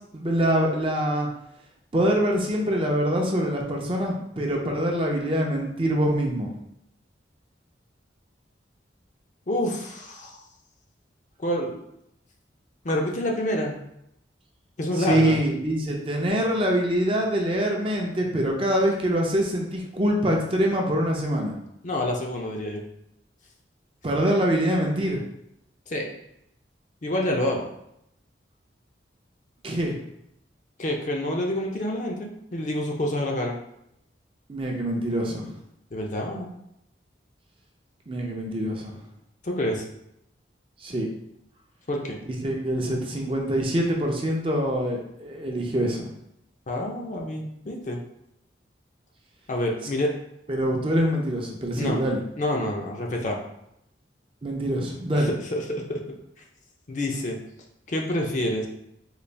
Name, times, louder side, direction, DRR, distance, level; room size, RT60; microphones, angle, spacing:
voice 1, 0.1-1.3 1.9-6.5 15.0-21.5 24.0-25.2 29.6-30.0 34.5-35.5 38.1-38.9 40.8-41.1 42.4-46.1 50.5-52.2 54.4-55.3, equal, 30° right, 0 dB, 0.5 m, -24 dB
voice 2, 9.5-10.4 11.4-11.8 12.8-13.7 14.8-15.4 21.8-22.8 25.9-26.0 27.0-27.7 30.8-33.6 35.9-36.5 39.4-39.8 41.9-42.2 46.7-48.0 49.5-50.1 51.8-52.0 52.4-53.4 55.1-55.6 55.9-56.0 56.9-57.4 57.9-58.7, left 1 dB, 40° left, 1 dB, 0.5 m, -27 dB
3.9 x 2.3 x 3.3 m, 0.78 s
head